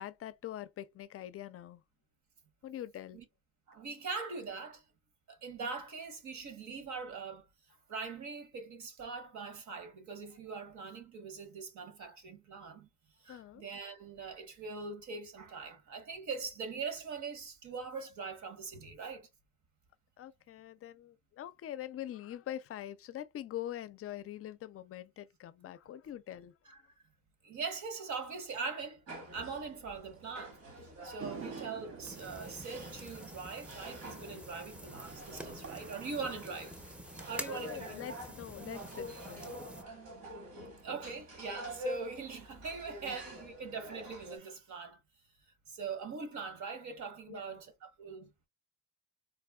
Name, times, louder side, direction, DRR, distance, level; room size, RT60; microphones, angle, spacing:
voice 1, 0.0-1.8 2.6-3.2 13.3-13.7 20.2-26.8 32.4-32.5 35.5-35.6 37.5-39.5 43.1-43.2 47.3-47.6, left 12 dB, 50° left, 0.4 m, -44 dB
voice 2, 3.7-4.8 5.3-7.4 7.9-12.9 13.2-19.3 26.7-26.8 27.4-29.0 29.3-30.6 31.0-36.7 37.2-37.9 40.8-45.0 45.7-48.3, right 4 dB, 70° right, 1.2 m, -42 dB
sound 1, 29.1-44.4, right 1 dB, 85° right, 2.0 m, -47 dB
sound 2, 31.2-37.7, right 7 dB, 45° right, 0.6 m, -51 dB
sound 3, 32.0-39.8, equal, 5° right, 0.6 m, -48 dB
4.1 x 2.3 x 2.2 m
cardioid pair, 90°, 30 cm